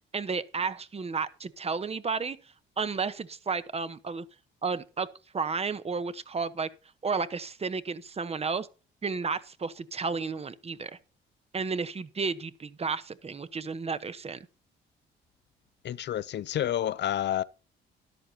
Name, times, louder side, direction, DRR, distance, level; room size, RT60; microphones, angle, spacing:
voice 1, 0.1-2.4 2.8-4.2 4.6-5.1 5.3-6.7 7.0-8.7 9.0-10.9 11.5-14.4, right 5 dB, 30° right, 1.0 m, -32 dB
voice 2, 15.8-17.4, left 11 dB, 60° left, 0.6 m, -29 dB
13.5 x 11.0 x 2.9 m
cardioid pair, 90°, 20 cm